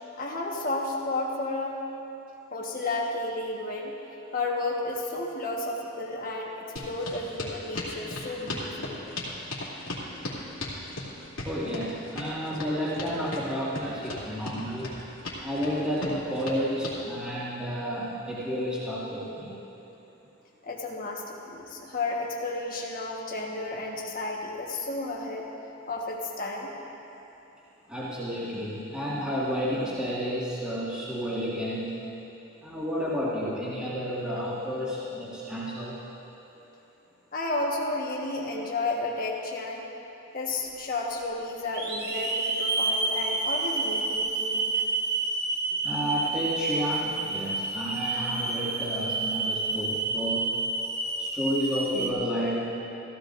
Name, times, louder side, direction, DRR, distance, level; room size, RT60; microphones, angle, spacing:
voice 1, 0.0-1.8 2.5-3.9 4.3-9.1 20.6-25.5 25.9-26.7 37.3-39.8 40.3-44.8, left 2 dB, 40° left, -2 dB, 1.4 m, -32 dB
sound 1, 6.8-17.0, left 2 dB, 80° left, 2.6 m, -36 dB
voice 2, 11.4-14.9 15.4-19.6 27.9-32.0 32.6-36.0 45.8-50.5 51.2-52.7, equal, 5° right, -9 dB, 1.9 m, -31 dB
Hiss / Alarm, 40.7-40.8 41.7-52.1, right 3 dB, 50° right, 1.1 m, -29 dB
16.0 x 15.0 x 2.6 m, 3.0 s
head